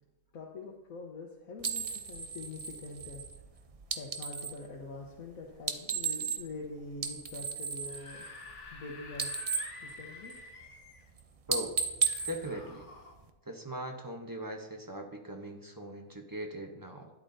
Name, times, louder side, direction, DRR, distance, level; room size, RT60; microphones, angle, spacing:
voice 1, 0.3-3.2 3.9-8.2 8.7-9.3 9.8-10.3, left 3 dB, 70° left, -1 dB, 1.5 m, -44 dB
sound 1, 1.6-4.6 5.5-6.7 6.9-8.8 9.1-10.6 11.0-11.2 11.5-13.3, right 6 dB, 65° right, 0.3 m, -35 dB
Screaming / Screech, 7.7-11.1 12.0-13.1, left 3 dB, 55° left, 1.4 m, -49 dB
voice 2, 12.2-12.9 13.4-17.1, equal, 20° right, 3 dB, 0.8 m, -40 dB
12.5 x 10.5 x 2.7 m, 1.0 s
omnidirectional pair, 1.5 m